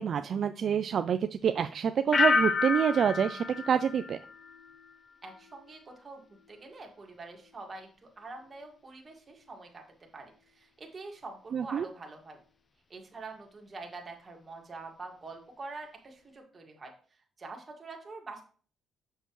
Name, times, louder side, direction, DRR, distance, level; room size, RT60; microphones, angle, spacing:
voice 1, 0.0-4.2 11.5-11.9, right 7 dB, 55° right, 10 dB, 0.3 m, -27 dB
sound 1, 2.1-5.0 5.3-5.8, left 4 dB, 35° left, 0.6 m, -30 dB
voice 2, 5.2-6.2 6.5-9.8 10.1-12.4 12.9-16.9 17.4-18.4, right 3 dB, 35° right, 2 dB, 1.9 m, -45 dB
6.7 x 6.4 x 3.1 m, 0.42 s
cardioid pair, 90°, 0 cm